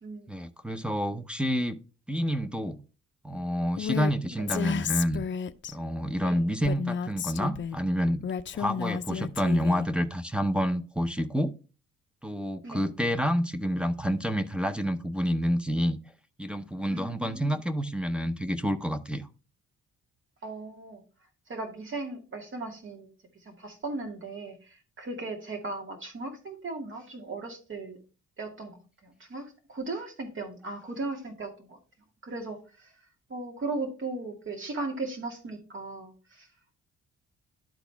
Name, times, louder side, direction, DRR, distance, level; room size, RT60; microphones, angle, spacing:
voice 1, 0.3-1.8 2.1-2.8 3.2-5.2 5.7-8.2 8.5-11.5 12.2-16.0 16.4-19.3, equal, 5° right, 0.6 m, -28 dB
Female speech woman speaking, 3.8-4.1 4.5-5.7 6.6-7.8 8.2-9.9, left 7 dB, 40° left, 0.5 m, -32 dB
voice 2, 16.9-17.6 20.4-21.0 21.5-23.1 23.5-28.0 28.4-28.7 29.0-31.8 32.2-32.9 33.3-36.5, right 3 dB, 40° right, 2.2 m, -37 dB
11.5 x 4.0 x 3.4 m
cardioid pair, 90°, 30 cm